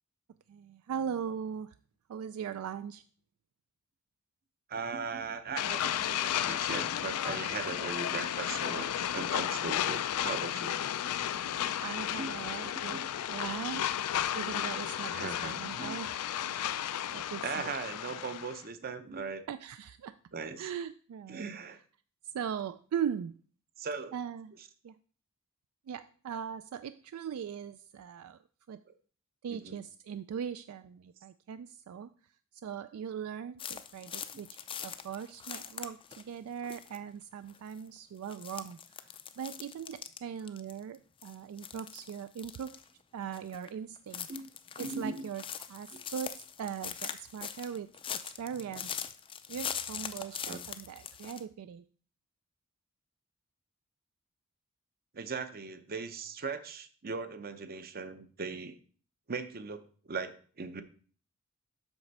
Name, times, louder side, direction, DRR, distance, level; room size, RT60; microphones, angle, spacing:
voice 1, 0.5-1.8 2.1-3.0 11.6-14.0 14.3-15.1 15.4-17.7 19.5-20.1 20.6-21.5 22.2-23.3 24.1-24.5 24.8-25.0 25.9-28.4 28.7-28.8 29.4-32.1 32.6-38.8 39.1-42.8 43.1-44.3 44.8-45.4 45.7-47.9 48.2-49.0 49.5-51.8, right 8 dB, 65° right, 13 dB, 0.3 m, -40 dB
voice 2, 4.7-10.8 12.1-12.3 12.9-13.1 15.1-16.0 17.4-19.4 20.3-20.7 21.3-21.8 23.8-24.1 29.5-29.8 44.3-44.5 44.8-45.3 50.5-50.6 55.1-58.8 59.3-60.8, right 4 dB, 45° right, 10 dB, 0.7 m, -39 dB
sound 1, 5.6-18.6, left 10 dB, 85° left, 0.4 m, -33 dB
sound 2, 33.6-36.3 36.6-37.0 37.5-37.8 38.2-41.0 41.2-42.9 43.3-43.7 44.0-51.4, left 8 dB, 25° left, 0.4 m, -42 dB
7.9 x 6.0 x 4.1 m, 0.43 s
head